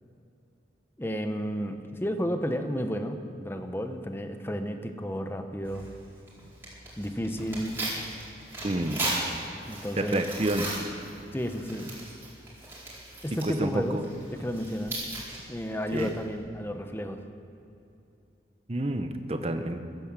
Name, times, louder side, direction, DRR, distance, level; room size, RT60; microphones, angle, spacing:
voice 1, 1.0-5.9 7.0-7.7 9.7-10.2 11.3-11.9 13.2-14.0 14.3-15.0 15.5-17.2, equal, 15° left, 6 dB, 0.9 m, -32 dB
Tearing, 5.6-16.4, right 2 dB, 15° right, 4.5 m, -38 dB
voice 2, 8.6-9.0 10.0-10.7 13.4-14.0 15.9-16.1 18.7-19.8, right 1 dB, 35° right, 7 dB, 0.9 m, -29 dB
15.5 x 12.5 x 7.5 m, 2.8 s
head